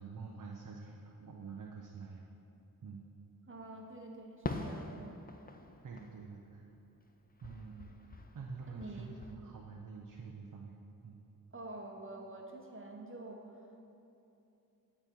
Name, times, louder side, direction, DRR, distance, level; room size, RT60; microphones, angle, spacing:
voice 1, 0.0-2.3 2.8-3.0 5.8-6.6 7.4-10.8 11.0-11.2, right 5 dB, 60° right, 0 dB, 0.6 m, -47 dB
voice 2, 3.5-5.2 8.7-9.1 11.5-13.6, right 2 dB, 35° right, 1 dB, 1.0 m, -47 dB
Fireworks, 4.4-7.1 7.4-9.3, left 3 dB, 25° left, 0.5 m, -44 dB
8.9 x 4.3 x 4.6 m, 2.8 s
wide cardioid pair, 65°, 36 cm